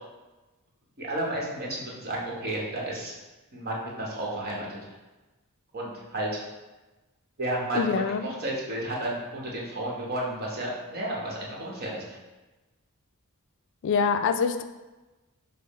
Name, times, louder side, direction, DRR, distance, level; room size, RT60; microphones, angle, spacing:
voice 1, 1.0-3.2 3.5-4.8 5.7-6.3 7.4-12.2, right 1 dB, 45° right, -3 dB, 1.0 m, -32 dB
voice 2, 7.7-8.3 13.8-14.6, left 5 dB, 60° left, 8 dB, 0.3 m, -25 dB
5.5 x 2.0 x 4.1 m, 1.1 s
head